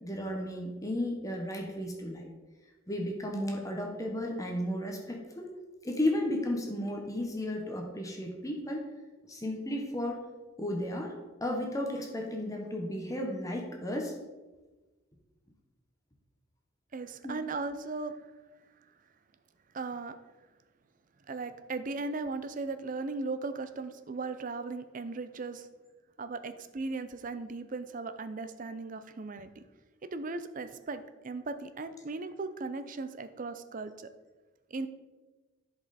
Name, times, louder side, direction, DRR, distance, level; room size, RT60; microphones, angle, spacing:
voice 1, 0.0-2.3 2.9-5.5 5.8-8.9 9.2-10.2 10.6-11.1 11.4-14.1 17.2-17.4, left 1 dB, 15° left, 1 dB, 1.0 m, -34 dB
voice 2, 16.9-18.3 19.7-20.2 21.3-25.7 26.2-29.6 30.1-34.1 34.7-34.9, right 3 dB, 40° right, 11 dB, 0.5 m, -37 dB
11.0 x 5.4 x 4.1 m, 1.2 s
head